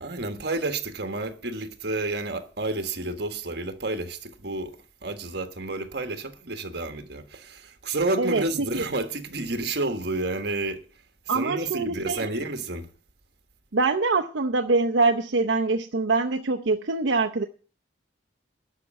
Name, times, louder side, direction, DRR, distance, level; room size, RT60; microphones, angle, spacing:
voice 1, 0.0-4.8 5.0-10.8 11.3-12.9, right 2 dB, 60° right, 1.6 m, -30 dB
voice 2, 11.3-12.3 13.7-17.4, right 3 dB, 80° right, 0.7 m, -24 dB
12.0 x 6.0 x 9.0 m
head